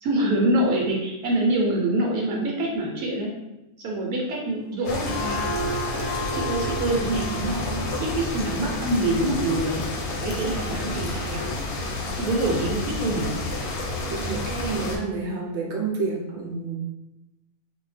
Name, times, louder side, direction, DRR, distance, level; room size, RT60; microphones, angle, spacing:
voice 1, 0.0-3.3 3.8-5.5 6.3-9.8 10.1-11.6 12.1-13.4, right 1 dB, 90° right, -1 dB, 1.1 m, -25 dB
sound 1, 4.6-10.0, equal, 60° left, 0.8 m, -34 dB
sound 2, 4.9-15.0, left 2 dB, 85° left, 1.1 m, -30 dB
voice 2, 14.1-16.8, right 4 dB, 65° right, -1 dB, 0.7 m, -29 dB
2.7 x 2.2 x 3.2 m, 0.95 s
omnidirectional pair, 1.5 m